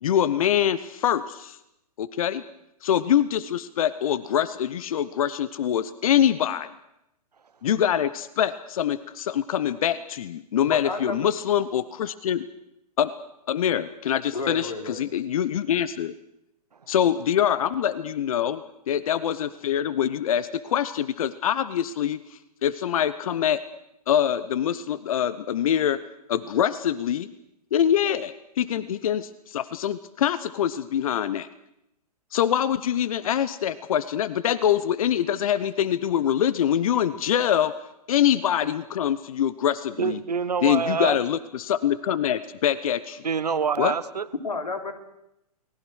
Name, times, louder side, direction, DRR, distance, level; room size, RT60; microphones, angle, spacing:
voice 1, 0.0-1.6 2.0-2.4 2.8-6.7 7.6-12.4 13.0-13.1 13.5-16.1 16.9-18.6 18.9-23.6 24.1-26.0 26.3-27.3 27.7-31.5 32.3-37.7 38.1-40.2 40.6-43.2 43.8-43.9, left 10 dB, 60° left, 16 dB, 1.0 m, -24 dB
voice 2, 10.7-11.3 14.3-15.0 44.4-44.9, left 3 dB, 85° left, 6 dB, 3.8 m, -31 dB
voice 3, 40.0-41.2 43.2-44.2, right 6 dB, 80° right, 14 dB, 1.5 m, -26 dB
30.0 x 20.0 x 6.4 m, 0.84 s
figure-of-eight pair, 115°, 20 cm